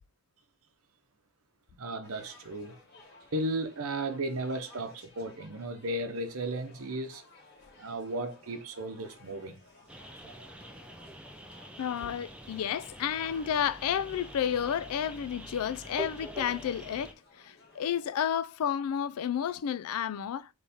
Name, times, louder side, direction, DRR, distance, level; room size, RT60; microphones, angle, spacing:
voice 1, 1.8-2.8 3.3-7.2 7.8-9.6 10.3-10.4, right 1 dB, 75° right, 0.8 m, -35 dB
sound 1, 2.0-18.2, left 3 dB, 50° left, 1.7 m, -57 dB
sound 2, 9.9-17.1, right 1 dB, 5° right, 0.4 m, -45 dB
voice 2, 11.8-20.5, left 9 dB, 80° left, 0.3 m, -31 dB
4.2 x 3.2 x 3.4 m
head